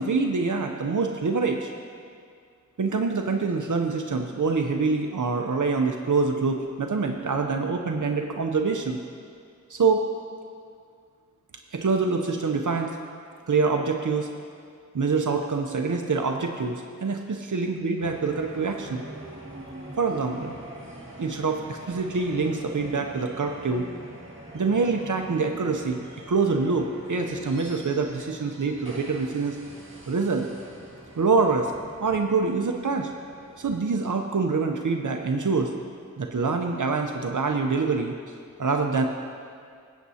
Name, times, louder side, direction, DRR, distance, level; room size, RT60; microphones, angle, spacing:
voice 1, 0.0-1.7 2.8-9.0 9.7-10.1 11.7-13.0 13.5-14.3 14.9-19.0 20.0-20.6 21.2-23.8 24.5-29.6 30.1-30.5 31.2-31.7 32.0-33.1 33.6-35.7 36.2-38.1 38.6-39.0, right 4 dB, 85° right, 3 dB, 0.7 m, -25 dB
sound 1, 18.0-34.0, right 1 dB, 45° right, 2.0 m, -44 dB
20.5 x 8.2 x 2.8 m, 2.2 s
wide cardioid pair, 50°, 30 cm